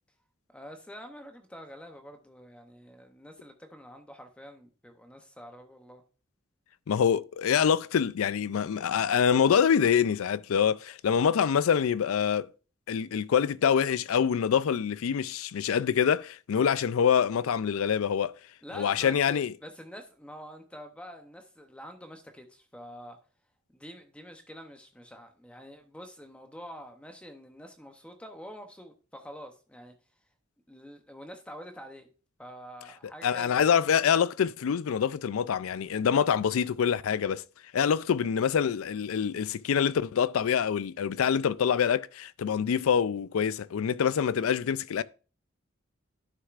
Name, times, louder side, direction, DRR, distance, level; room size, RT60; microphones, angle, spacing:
voice 1, 0.5-6.0 18.6-23.2 23.7-29.9 30.7-32.1 32.4-33.6, equal, 5° left, 0.6 m, -46 dB
voice 2, 6.9-12.5 12.9-18.3 18.7-19.5 33.2-37.4 37.7-45.0, left 7 dB, 85° left, 0.4 m, -25 dB
11.0 x 6.4 x 2.4 m
head